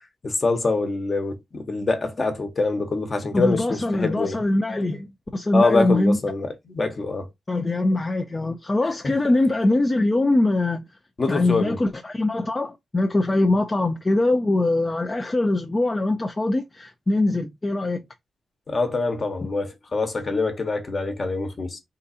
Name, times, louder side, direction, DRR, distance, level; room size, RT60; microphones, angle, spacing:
voice 1, 0.2-4.4 5.5-7.3 11.2-11.8 18.7-21.8, left 3 dB, 40° left, 1.2 m, -25 dB
voice 2, 3.3-5.1 5.3-6.2 7.5-10.8 11.3-18.0, left 2 dB, 25° left, 0.6 m, -22 dB
3.8 x 2.7 x 4.1 m
cardioid pair, 85°, 0 cm